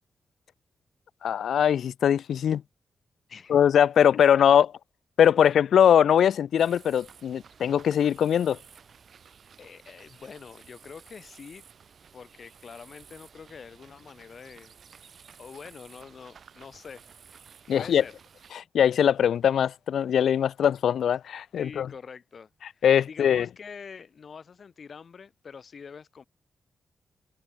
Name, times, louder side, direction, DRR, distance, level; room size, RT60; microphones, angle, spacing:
voice 1, 1.2-2.6 3.5-4.7 5.2-8.6 17.7-18.0 18.5-21.9 22.8-23.5, left 9 dB, 90° left, 0.4 m, -21 dB
sound 1, 6.6-18.5, right 6 dB, 50° right, 4.8 m, -53 dB
voice 2, 9.6-11.6 12.1-14.7 15.4-17.1 17.7-18.2 21.6-26.2, left 6 dB, 45° left, 5.7 m, -45 dB
wide cardioid pair, 175°, 0 cm